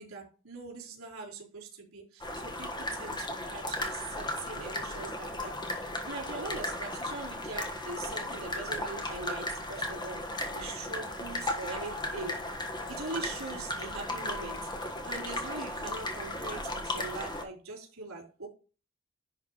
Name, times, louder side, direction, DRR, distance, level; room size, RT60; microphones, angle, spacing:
voice 1, 0.0-10.2 10.5-12.4 12.9-14.7 15.0-18.5, right 3 dB, 85° right, 4.2 m, -42 dB
sound 1, 2.2-17.4, left 1 dB, 20° left, 1.3 m, -36 dB
10.5 x 4.1 x 4.0 m
head